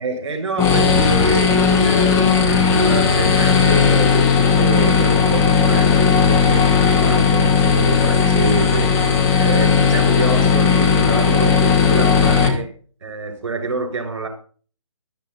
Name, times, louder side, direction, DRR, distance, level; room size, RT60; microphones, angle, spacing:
voice 1, 0.0-6.7 7.0-8.9 9.4-12.7 13.0-14.3, right 3 dB, 55° right, 5 dB, 6.9 m, -27 dB
sound 1, 0.6-12.5, left 5 dB, 15° left, 2.5 m, -16 dB
13.5 x 13.0 x 4.1 m, 0.41 s
figure-of-eight pair, 140°, 17 cm